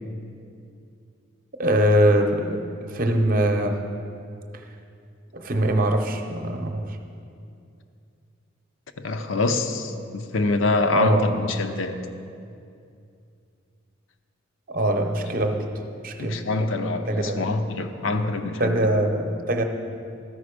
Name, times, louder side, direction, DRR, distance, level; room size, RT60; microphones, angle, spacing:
voice 1, 1.6-3.8 5.3-7.0 10.9-11.4 14.7-15.7 16.0-16.5 17.1-17.4 18.6-19.6, right 1 dB, 45° right, 0.7 m, -22 dB
voice 2, 9.0-12.0 16.2-18.8, left 3 dB, 80° left, 0.6 m, -25 dB
13.0 x 5.1 x 4.9 m
head